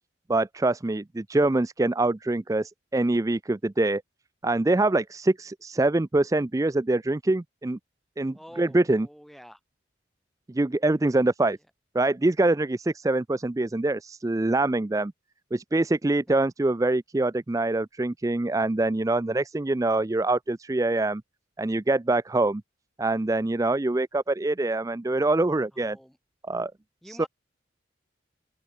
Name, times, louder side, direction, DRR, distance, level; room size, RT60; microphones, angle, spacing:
voice 1, 0.3-4.0 4.4-7.8 8.2-9.1 10.5-11.6 11.9-15.1 15.5-21.2 21.6-22.6 23.0-26.0 26.5-26.7 27.1-27.3, right 2 dB, 15° right, 0.4 m, -24 dB
voice 2, 8.3-9.6 16.3-16.4 25.7-26.2 27.0-27.3, equal, ahead, 6.8 m, -47 dB
open air
head